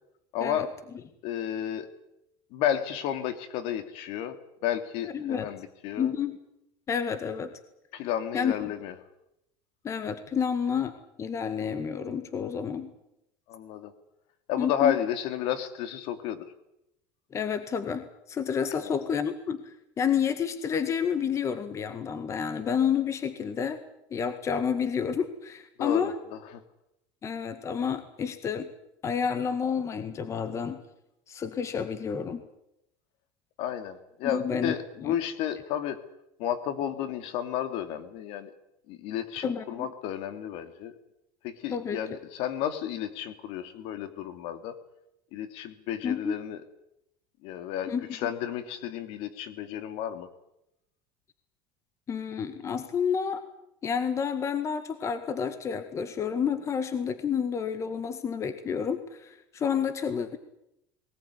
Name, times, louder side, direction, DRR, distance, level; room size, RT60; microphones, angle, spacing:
voice 1, 0.3-0.7 1.2-1.9 2.5-4.4 4.6-6.1 7.9-8.9 13.5-13.9 14.5-16.4 18.8-19.0 25.8-26.1 26.5-26.6 33.6-36.0 36.4-38.5 38.9-40.9 41.4-44.7 45.3-46.6 47.4-50.3, left 10 dB, 65° left, 10 dB, 2.9 m, -32 dB
voice 2, 5.1-5.5 6.0-6.4 6.9-7.5 8.3-8.7 9.8-12.9 14.6-15.0 17.3-23.8 24.1-26.1 27.2-28.7 29.0-30.8 31.3-32.4 34.3-34.7 35.0-35.1 39.4-39.9 41.7-42.0 46.0-46.4 47.9-48.1 52.1-53.4 53.8-60.4, left 7 dB, 30° left, 11 dB, 1.8 m, -30 dB
20.5 x 19.5 x 9.9 m, 0.82 s
supercardioid pair, 130°, 10 cm